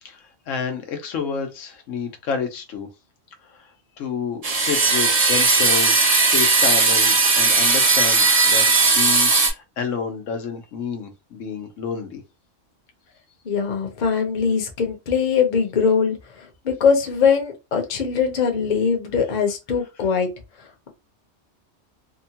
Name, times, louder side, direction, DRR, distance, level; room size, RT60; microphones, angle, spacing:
voice 1, 0.0-2.9 3.4-3.7 4.0-8.7 9.0-12.2, left 6 dB, 90° left, 1.1 m, -29 dB
sound 1, 4.4-9.5, right 3 dB, 40° right, 0.7 m, -17 dB
voice 2, 13.4-20.3, left 6 dB, 45° left, 0.8 m, -21 dB
2.8 x 2.2 x 2.7 m
omnidirectional pair, 1.3 m